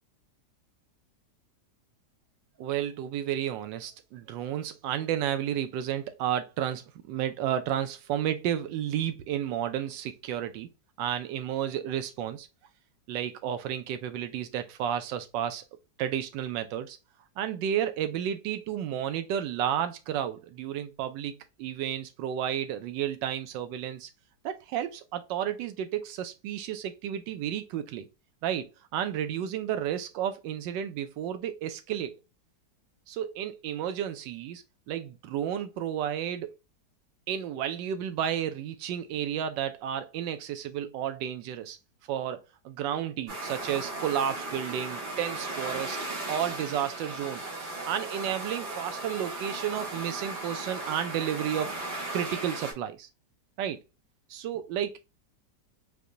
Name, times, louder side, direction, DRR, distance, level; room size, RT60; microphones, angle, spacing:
voice 1, 2.6-10.7 11.0-12.5 13.1-15.6 16.0-17.0 17.4-24.1 24.4-28.1 28.4-28.7 28.9-32.1 33.1-36.5 37.3-41.8 42.1-46.0 46.3-47.4 47.8-51.7 52.1-53.1 53.6-53.8 54.3-55.0, right 10 dB, 85° right, 1.3 m, -32 dB
sound 1, 43.3-52.7, right 2 dB, 70° right, 2.0 m, -36 dB
4.8 x 2.2 x 2.5 m
omnidirectional pair, 1.9 m